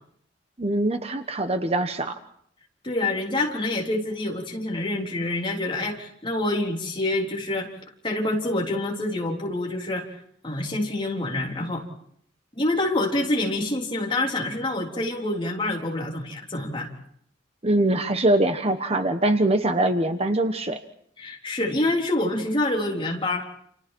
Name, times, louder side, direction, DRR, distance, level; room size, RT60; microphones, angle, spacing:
voice 1, 0.6-2.2 17.6-20.8, right 1 dB, 30° right, 7 dB, 1.2 m, -23 dB
voice 2, 2.8-7.7 8.0-10.1 10.4-11.8 12.6-16.9 21.2-23.4, left 2 dB, 25° left, 0 dB, 3.8 m, -26 dB
29.5 x 29.0 x 4.6 m, 0.66 s
head